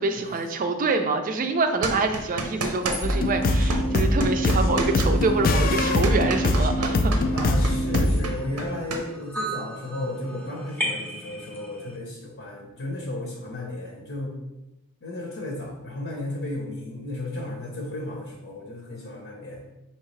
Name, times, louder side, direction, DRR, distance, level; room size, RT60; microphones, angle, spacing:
voice 1, 0.0-7.1, right 3 dB, 40° right, 7 dB, 0.4 m, -26 dB
sound 1, 1.8-3.2 3.4-9.0, right 3 dB, 85° right, 0.7 m, -29 dB
sound 2, 2.8-12.0, right 1 dB, 10° left, 0.7 m, -38 dB
sound 3, 3.0-8.2, left 1 dB, 40° left, 0.4 m, -22 dB
voice 2, 7.3-14.3 15.0-19.6, left 1 dB, 60° left, -1 dB, 0.8 m, -34 dB
4.6 x 2.9 x 3.2 m, 0.96 s
head